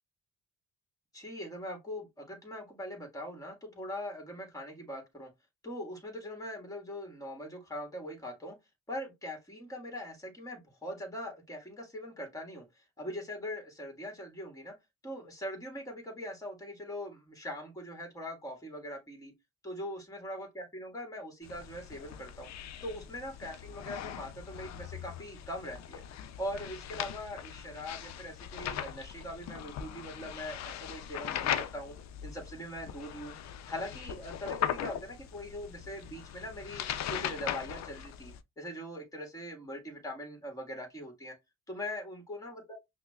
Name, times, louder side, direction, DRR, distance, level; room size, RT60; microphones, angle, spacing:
voice 1, 1.1-5.3 5.6-8.6 8.9-14.7 15.0-19.3 19.6-22.5 22.8-26.0 26.4-32.0 32.2-41.3 41.7-42.8, left 1 dB, 10° left, 1.5 m, -41 dB
sound 1, 21.4-38.4, left 10 dB, 65° left, 0.5 m, -39 dB
5.5 x 2.1 x 2.3 m
cardioid pair, 90°, 30 cm